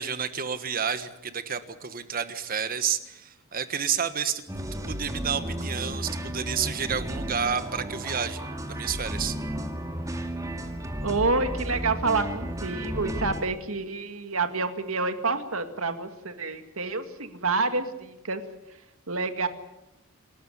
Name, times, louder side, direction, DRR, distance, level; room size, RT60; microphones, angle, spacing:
voice 1, 0.0-8.4 8.7-9.3, right 7 dB, 45° right, 11 dB, 1.4 m, -30 dB
sound 1, 4.5-13.4, right 1 dB, 15° right, 2.2 m, -33 dB
voice 2, 11.0-18.4 19.1-19.5, right 3 dB, 80° right, 8 dB, 2.1 m, -28 dB
27.0 x 13.5 x 9.9 m, 0.93 s
head